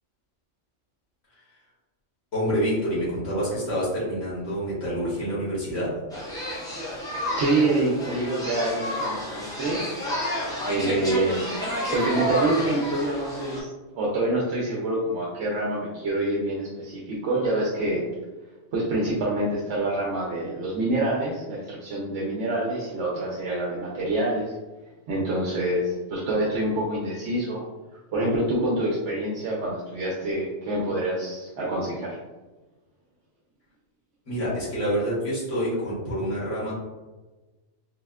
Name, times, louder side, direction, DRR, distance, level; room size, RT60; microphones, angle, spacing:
voice 1, 2.3-6.0 34.3-36.7, equal, 65° left, -8 dB, 1.8 m, -27 dB
sound 1, 6.1-13.6, equal, 5° left, 0.5 m, -30 dB
voice 2, 7.3-10.1 10.7-11.5 11.9-18.0 18.7-24.5 25.1-27.6 28.1-32.2, right 2 dB, 65° right, -4 dB, 0.8 m, -26 dB
4.1 x 2.1 x 2.3 m, 1.2 s
omnidirectional pair, 1.4 m